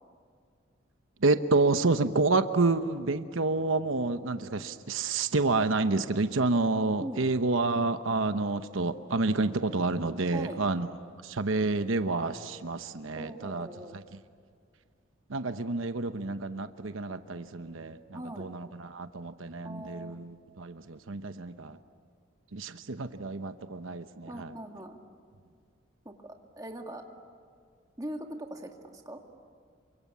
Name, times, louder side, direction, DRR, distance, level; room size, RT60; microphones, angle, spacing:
voice 1, 1.2-10.9 11.2-13.7 13.9-14.0 15.3-21.8 22.5-24.6, right 3 dB, 85° right, 9 dB, 1.0 m, -29 dB
voice 2, 13.2-14.0 18.1-18.5 19.6-20.2 24.3-25.0 26.1-27.0 28.0-29.2, right 1 dB, 20° right, 3 dB, 2.1 m, -41 dB
28.5 x 24.5 x 8.5 m, 2.2 s
head